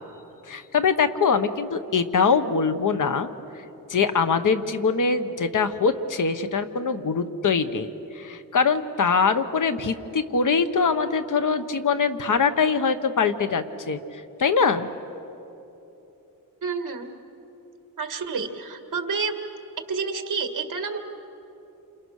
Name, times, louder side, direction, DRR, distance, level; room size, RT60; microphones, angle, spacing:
voice 1, 0.5-3.3 3.9-7.9 8.1-14.0 14.4-14.9, left 5 dB, 60° left, 9 dB, 1.1 m, -23 dB
voice 2, 16.6-17.1 18.0-19.4 19.9-21.0, right 5 dB, 60° right, 7 dB, 1.8 m, -29 dB
28.5 x 27.5 x 6.5 m, 3.0 s
wide cardioid pair, 160°, 36 cm